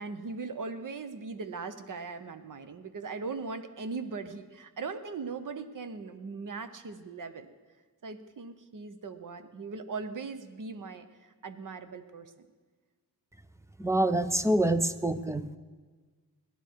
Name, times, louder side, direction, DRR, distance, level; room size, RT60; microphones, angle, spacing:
voice 1, 0.0-7.5 8.0-12.3, right 4 dB, 55° right, 9 dB, 0.9 m, -39 dB
voice 2, 13.8-15.6, right 1 dB, 10° right, 12 dB, 0.4 m, -26 dB
17.5 x 12.5 x 4.6 m, 1.4 s
wide cardioid pair, 170°, 37 cm